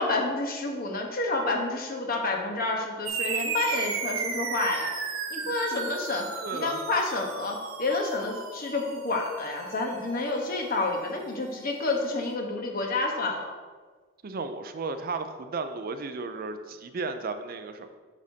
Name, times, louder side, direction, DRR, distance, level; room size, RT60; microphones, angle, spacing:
voice 1, 0.0-4.9 5.3-13.5, left 2 dB, 45° left, 1 dB, 1.0 m, -29 dB
sound 1, 3.1-11.9, right 5 dB, 75° right, 0.8 m, -35 dB
voice 2, 6.4-6.8 14.2-18.0, right 3 dB, 45° right, 9 dB, 0.4 m, -34 dB
8.2 x 6.3 x 2.8 m, 1.5 s
head